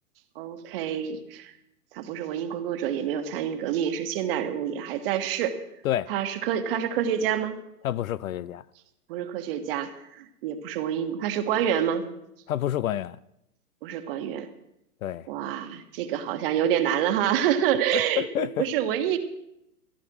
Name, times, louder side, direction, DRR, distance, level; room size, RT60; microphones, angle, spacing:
voice 1, 0.3-1.5 1.9-5.6 6.1-7.6 9.1-12.0 13.8-14.5 15.3-19.2, right 9 dB, 35° right, 1.4 m, -27 dB
voice 2, 7.8-8.6 12.5-13.2 15.0-15.3 17.9-18.7, left 12 dB, 60° left, 0.5 m, -28 dB
14.5 x 11.0 x 6.1 m
hypercardioid pair, 145°, 47 cm